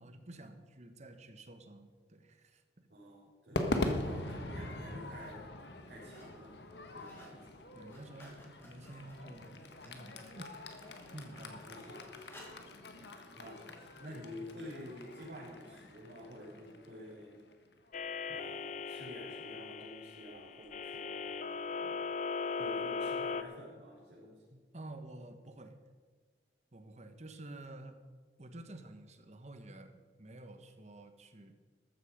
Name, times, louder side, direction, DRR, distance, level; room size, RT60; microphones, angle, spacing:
voice 1, 0.0-2.9 7.7-10.5 10.8-11.7 24.7-25.8 26.7-28.0 28.4-31.5, right 2 dB, 40° right, 8 dB, 1.3 m, -50 dB
voice 2, 2.9-5.5 5.8-6.6 6.9-7.5 11.7-12.1 13.0-17.5 18.3-22.0 22.6-24.6, equal, 70° right, -8 dB, 4.7 m, -49 dB
Crowd / Fireworks, 3.5-17.9, left 1 dB, 75° left, 1.5 m, -42 dB
sound 1, 4.2-4.3 4.9-5.3 5.7-6.4 6.7-7.4 7.7-12.7 13.3-13.4, left 1 dB, 15° left, 3.1 m, -58 dB
sound 2, 17.9-23.4, left 5 dB, 45° left, 0.7 m, -38 dB
14.5 x 12.5 x 5.1 m, 1.5 s
head